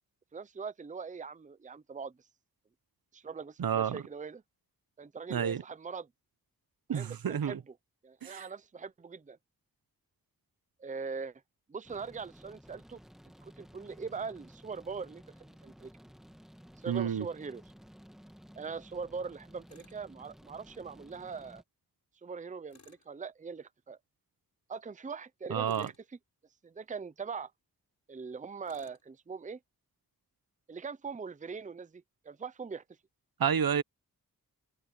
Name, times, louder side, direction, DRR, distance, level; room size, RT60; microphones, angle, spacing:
voice 1, 0.3-2.2 3.1-4.4 5.0-6.1 6.9-7.6 8.0-9.4 10.8-11.4 11.7-13.0 13.4-15.9 16.8-17.6 18.6-21.6 22.2-24.0 24.7-25.9 26.6-27.5 28.1-29.6 30.7-32.8, right 5 dB, 20° right, 0.6 m, -41 dB
voice 2, 3.6-4.0 5.3-5.6 6.9-7.6 8.2-8.5 16.9-17.3 25.5-25.9 33.4-33.8, right 8 dB, 75° right, 0.8 m, -30 dB
sound 1, 11.8-21.6, equal, ahead, 1.3 m, -55 dB
Tools, 19.7-20.0 22.7-23.1 25.6-26.1 28.6-29.0, left 4 dB, 50° left, 7.1 m, -60 dB
wide cardioid pair, 120°, 35 cm